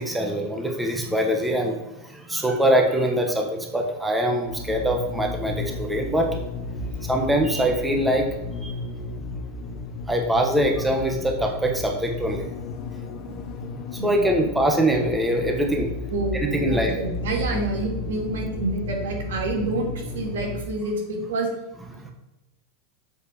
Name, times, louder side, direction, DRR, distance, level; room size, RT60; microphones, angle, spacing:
voice 1, 0.0-6.4 7.0-8.3 8.6-8.8 10.1-12.5 13.9-15.9 16.4-16.9 21.9-22.1, right 1 dB, 5° right, 2 dB, 1.3 m, -23 dB
sound 1, 4.5-20.6, left 2 dB, 50° left, 0.9 m, -33 dB
voice 2, 16.1-21.5, right 2 dB, 85° right, 1 dB, 2.4 m, -28 dB
7.1 x 4.4 x 6.8 m, 0.96 s
supercardioid pair, 130°, 0 cm